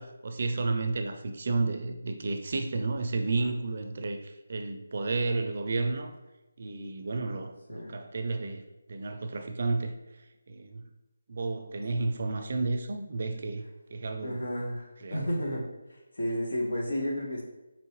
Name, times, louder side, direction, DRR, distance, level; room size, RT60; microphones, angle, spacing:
voice 1, 0.0-6.2 6.6-8.6 8.9-9.9 10.5-10.8 11.3-13.6 13.9-14.4 15.0-15.3, right 3 dB, 45° right, 6 dB, 0.4 m, -32 dB
voice 2, 14.2-15.6 15.9-17.4, equal, 80° left, 0 dB, 1.1 m, -32 dB
4.5 x 3.0 x 3.0 m, 1.0 s
figure-of-eight pair, 170°, 0 cm